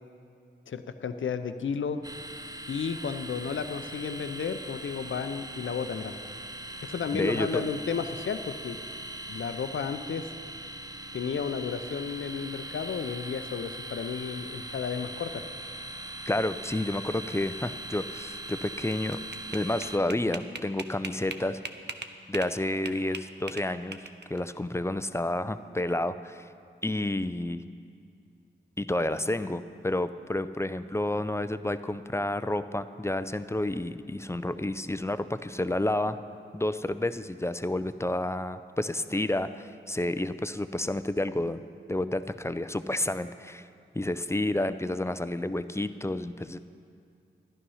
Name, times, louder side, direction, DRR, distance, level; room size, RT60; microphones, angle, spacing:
voice 1, 0.7-2.0 2.7-6.1 6.8-8.8 9.3-10.3 11.1-15.4, left 6 dB, 70° left, 10 dB, 0.6 m, -33 dB
sound 1, 2.0-20.0, right 1 dB, 20° right, 0.8 m, -41 dB
voice 2, 7.1-7.7 16.3-19.2 19.5-21.6 22.3-24.0 24.3-26.5 26.8-27.6 28.8-36.2 36.5-41.6 41.9-43.7 43.9-46.6, left 1 dB, 15° left, 12 dB, 0.5 m, -30 dB
sound 2, 18.7-22.5 22.9-24.4, right 4 dB, 55° right, 0.8 m, -39 dB
11.5 x 11.0 x 5.6 m, 2.4 s
cardioid pair, 40°, 21 cm